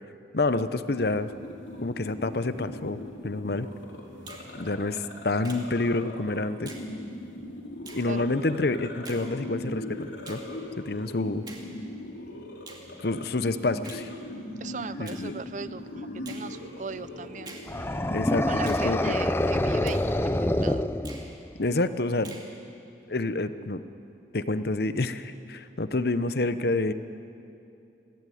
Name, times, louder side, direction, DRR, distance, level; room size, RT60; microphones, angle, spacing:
voice 1, 0.3-1.3 1.8-3.7 4.6-6.7 7.9-10.4 10.8-11.4 13.0-14.1 15.0-15.3 18.1-19.1 21.6-22.4 23.1-23.8 24.3-26.9, left 2 dB, 55° left, 12 dB, 0.8 m, -28 dB
sound 1, 1.0-18.3, left 1 dB, 75° left, 3.8 m, -40 dB
Finger snapping, 4.3-4.5 5.4-5.7 6.7-6.9 7.8-8.1 9.0-9.3 10.2-10.5 11.5-11.7 12.7-12.9 13.8-14.1 15.0-15.2 16.2-16.5 17.4-17.7 18.6-18.9 19.9-20.1 21.0-21.3 22.2-22.5, right 3 dB, 20° right, 2.3 m, -45 dB
voice 2, 14.6-17.6 18.5-20.8, right 4 dB, 40° right, 15 dB, 0.5 m, -38 dB
sound 2, 17.7-21.5, left 1 dB, 10° left, 0.5 m, -26 dB
22.0 x 16.0 x 9.4 m, 2.7 s
head